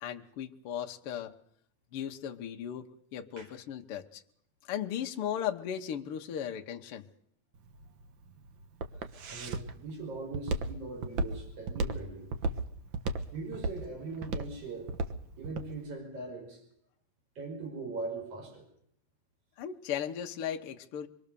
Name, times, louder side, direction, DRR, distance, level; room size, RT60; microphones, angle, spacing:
voice 1, 0.0-1.3 1.9-2.9 3.1-4.2 4.7-7.0 19.6-21.1, left 9 dB, 70° left, 3 dB, 1.3 m, -36 dB
Walk footsteps, 7.6-15.7, right 2 dB, 75° right, 1.1 m, -34 dB
voice 2, 8.9-12.3 13.3-14.9 15.4-16.6 17.4-18.7, right 3 dB, 45° right, 2 dB, 5.8 m, -41 dB
25.0 x 21.5 x 6.9 m, 0.68 s
omnidirectional pair, 4.0 m